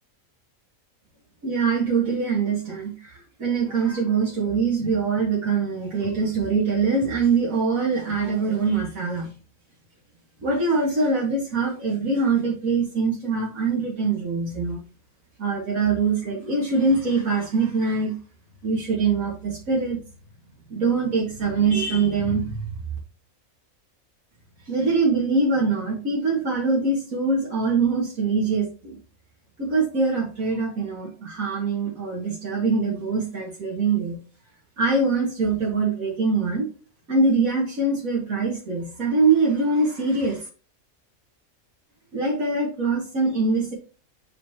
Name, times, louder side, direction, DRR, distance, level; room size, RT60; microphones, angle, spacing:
voice 1, 1.4-9.3 10.4-14.8 15.4-18.1 18.6-20.0 20.7-22.7 24.6-29.0 29.6-34.2 34.8-36.7 37.1-40.5 42.1-43.7, right 4 dB, 80° right, -4 dB, 2.7 m, -23 dB
9.2 x 5.6 x 3.0 m, 0.35 s
omnidirectional pair, 1.4 m